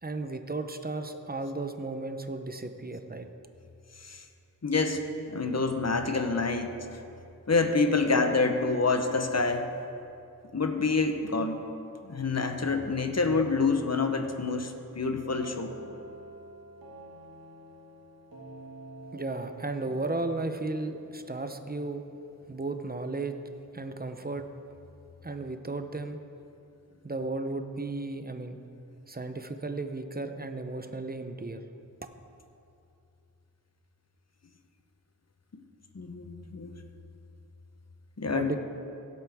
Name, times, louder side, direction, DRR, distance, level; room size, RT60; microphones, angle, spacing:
voice 1, 0.0-3.3 19.1-22.0 22.5-23.4 23.7-24.5 25.2-26.2 27.0-28.6 29.1-31.6 38.3-38.6, right 3 dB, 25° right, 8 dB, 0.7 m, -34 dB
voice 2, 4.6-5.0 5.3-6.8 7.5-9.6 10.5-11.6 12.0-15.7 35.9-36.8 38.2-38.6, left 4 dB, 50° left, 6 dB, 0.9 m, -27 dB
sound 1, 15.3-23.0, right 1 dB, 85° right, 1.9 m, -49 dB
17.0 x 8.0 x 3.5 m, 2.6 s
wide cardioid pair, 50°, 34 cm